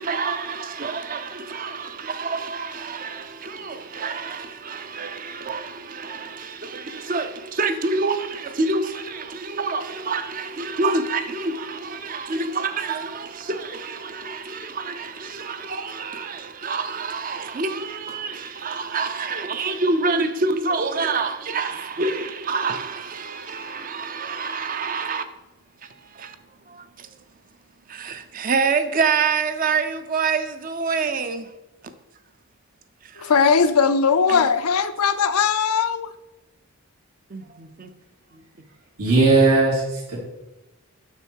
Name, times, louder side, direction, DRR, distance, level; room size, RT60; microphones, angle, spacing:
voice 1, 0.0-25.3 25.8-26.4 26.7-27.1 27.9-31.5 33.0-33.3 34.3-34.5 37.3-37.9 38.3-38.4, right 4 dB, 40° right, 0.5 m, -27 dB
voice 2, 33.2-36.1, left 6 dB, 85° left, 0.5 m, -19 dB
voice 3, 39.0-40.2, right 3 dB, 90° right, 3.0 m, -18 dB
6.7 x 6.2 x 4.6 m
head